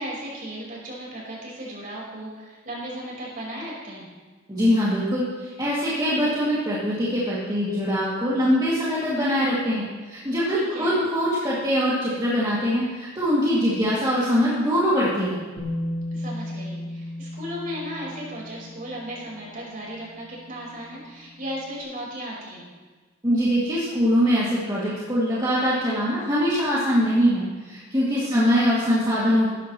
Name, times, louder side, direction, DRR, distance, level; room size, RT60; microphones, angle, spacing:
voice 1, 0.0-4.0 10.5-11.0 16.1-22.6 28.2-28.7, equal, 45° right, -4 dB, 4.8 m, -36 dB
voice 2, 4.5-15.4 23.2-29.5, equal, 20° right, -9 dB, 2.6 m, -23 dB
Bass guitar, 15.6-21.6, left 1 dB, 70° left, 3.4 m, -36 dB
17.5 x 12.5 x 3.2 m, 1.4 s
head